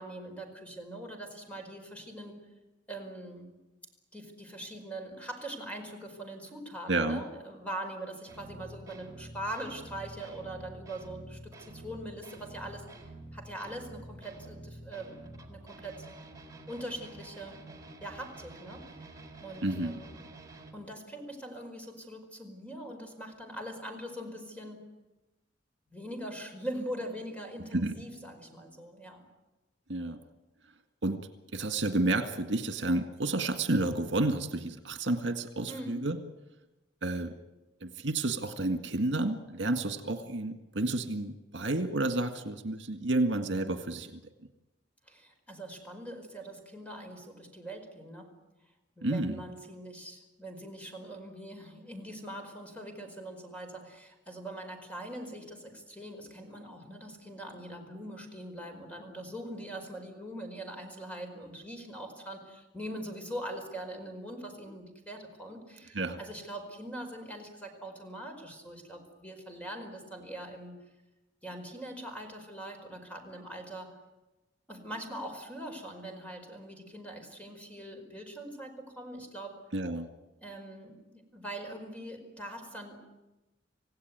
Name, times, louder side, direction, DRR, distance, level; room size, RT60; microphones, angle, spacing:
voice 1, 0.0-2.3 2.9-3.5 4.1-12.8 13.3-16.1 16.7-17.5 18.0-18.8 19.4-20.1 20.7-24.8 25.9-29.2 35.7-36.0 45.0-48.3 49.0-70.8 71.4-74.0 74.7-79.6 80.4-83.0, right 1 dB, 10° left, 4 dB, 4.9 m, -42 dB
voice 2, 6.9-7.2 19.6-20.0 27.7-27.9 29.9-30.2 31.0-31.2 31.5-36.2 37.0-37.3 37.8-44.2 49.0-49.4 65.9-66.2 79.7-80.1, right 2 dB, 75° right, 7 dB, 1.9 m, -30 dB
sound 1, 8.3-20.7, right 2 dB, 20° right, 3.9 m, -48 dB
27.5 x 17.0 x 9.5 m, 1.0 s
head